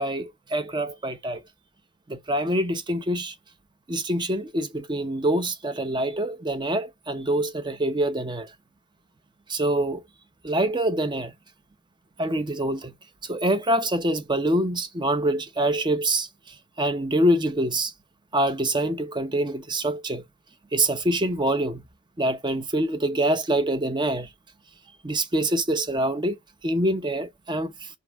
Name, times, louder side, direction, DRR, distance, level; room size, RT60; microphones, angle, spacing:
voice 1, 0.0-1.4 2.1-3.3 3.9-8.5 9.5-10.0 10.4-11.3 12.2-12.9 13.3-16.3 16.8-17.9 18.3-20.2 20.7-21.8 22.2-24.3 25.0-26.4 26.6-27.9, right 1 dB, 25° right, 0.8 m, -25 dB
5.9 x 3.9 x 4.6 m
head